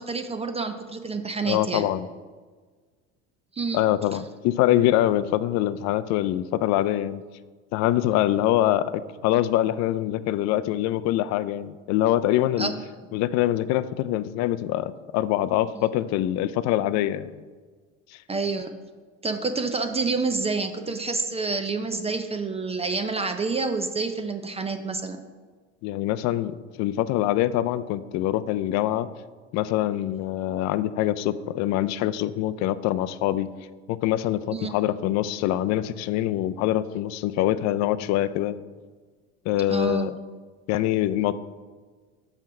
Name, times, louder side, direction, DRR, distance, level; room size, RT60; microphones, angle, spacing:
voice 1, 0.0-1.9 3.5-3.8 12.6-12.8 15.8-15.9 18.3-18.8 19.2-25.2 34.5-34.7 39.7-40.2, right 4 dB, 20° right, 7 dB, 0.5 m, -28 dB
voice 2, 1.5-2.1 3.7-7.2 7.7-12.7 13.1-17.4 25.8-29.1 29.5-33.5 33.9-38.6 39.5-40.1 40.7-41.3, left 13 dB, 55° left, 14 dB, 0.4 m, -24 dB
5.6 x 4.5 x 6.1 m, 1.5 s
supercardioid pair, 90°, 34 cm